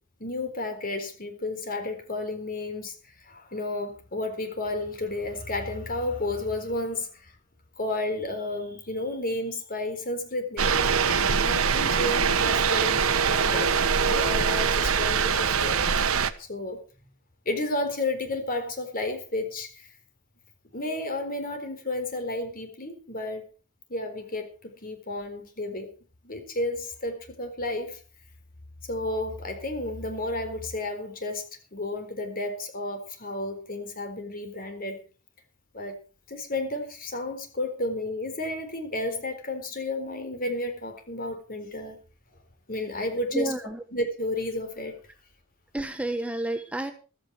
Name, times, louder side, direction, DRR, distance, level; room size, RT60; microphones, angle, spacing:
voice 1, 0.2-7.3 7.8-15.8 16.4-16.8 17.5-19.9 20.7-23.4 23.9-25.9 26.2-28.0 28.9-35.0 35.7-36.0 36.3-42.0 42.7-43.5 43.9-45.0, left 2 dB, 45° left, 6 dB, 4.0 m, -32 dB
sound 1, 10.6-16.3, right 6 dB, 75° right, 1.1 m, -23 dB
voice 2, 43.3-43.8 45.7-46.9, right 1 dB, 5° right, 7 dB, 1.1 m, -30 dB
15.0 x 13.5 x 4.6 m, 0.35 s
head